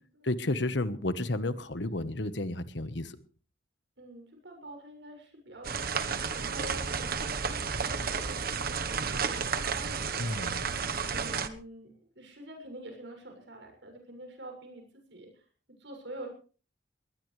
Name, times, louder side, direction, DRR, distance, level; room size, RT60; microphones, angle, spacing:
voice 1, 0.2-3.1 10.2-10.6, left 2 dB, 65° left, 13 dB, 1.3 m, -32 dB
voice 2, 4.0-15.4 15.8-16.3, right 1 dB, 65° right, 4 dB, 7.0 m, -47 dB
sound 1, 5.6-11.5, right 5 dB, 50° right, 1.2 m, -32 dB
20.5 x 20.0 x 3.3 m, 0.39 s
head